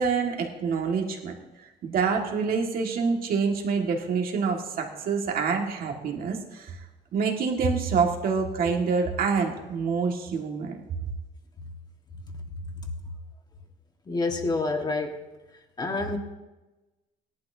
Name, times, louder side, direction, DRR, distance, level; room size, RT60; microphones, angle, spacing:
voice 1, 0.0-1.4 1.8-6.7 7.1-10.7, right 5 dB, 60° right, 1 dB, 2.0 m, -26 dB
voice 2, 14.1-15.2 15.8-16.2, left 3 dB, 25° left, 3 dB, 1.6 m, -27 dB
17.5 x 11.5 x 2.8 m, 1.1 s
cardioid pair, 110°, 17 cm